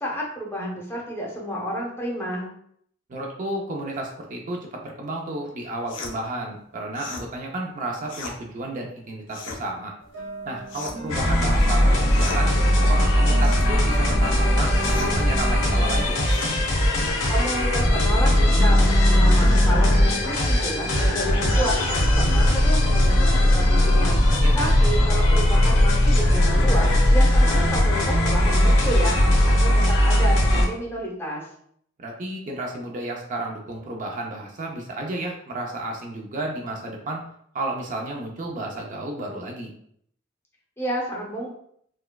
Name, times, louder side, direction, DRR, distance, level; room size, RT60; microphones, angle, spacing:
voice 1, 0.0-2.5 17.3-24.2 24.5-29.2 29.4-31.4 40.8-41.5, equal, 10° left, -3 dB, 0.7 m, -30 dB
voice 2, 3.1-9.9 10.4-12.5 12.8-16.2 24.4-24.7 32.0-37.2 37.5-39.7, right 2 dB, 40° right, 0 dB, 0.4 m, -32 dB
sound 1, 5.9-6.2 6.9-7.3 8.1-8.4 9.3-9.6 10.7-11.1 12.1-12.4 13.4-13.7 14.8-15.2 16.3-16.5, left 4 dB, 65° left, 0.6 m, -37 dB
sound 2, 10.0-20.2, left 1 dB, 75° right, 0.6 m, -37 dB
sound 3, 11.1-30.6, left 1 dB, 90° left, 0.9 m, -19 dB
4.3 x 2.2 x 2.2 m, 0.67 s
head